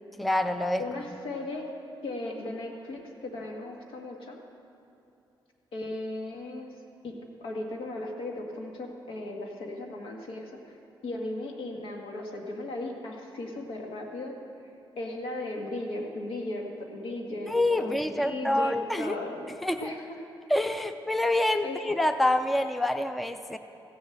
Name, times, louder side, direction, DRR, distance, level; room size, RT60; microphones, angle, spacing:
voice 1, 0.2-0.8 17.5-19.2 19.6-19.9 20.5-23.6, left 1 dB, ahead, 9 dB, 0.3 m, -26 dB
voice 2, 0.8-1.7 2.0-4.4 5.7-6.7 7.0-7.1 7.4-10.8 11.0-14.3 15.0-19.5 19.8-20.2 21.6-21.8, left 2 dB, 80° left, 1 dB, 1.8 m, -36 dB
15.5 x 7.2 x 7.8 m, 2.8 s
wide cardioid pair, 160°, 9 cm